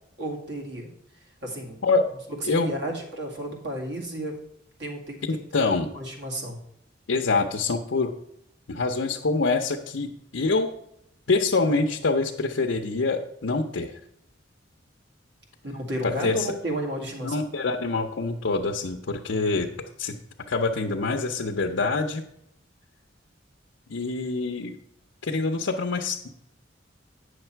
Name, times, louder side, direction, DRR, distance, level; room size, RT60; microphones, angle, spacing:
voice 1, 0.2-0.9 1.4-1.8 2.5-4.4 4.8-5.4 5.6-6.6 15.6-17.4, right 1 dB, 65° right, 0 dB, 2.1 m, -32 dB
voice 2, 5.2-5.9 7.1-8.1 8.7-10.7 11.3-14.0 16.0-16.5 17.2-19.7 20.0-20.2 20.5-22.2 23.9-24.8 25.2-26.3, left 3 dB, 90° left, 1 dB, 0.7 m, -25 dB
8.9 x 6.5 x 4.5 m, 0.77 s
head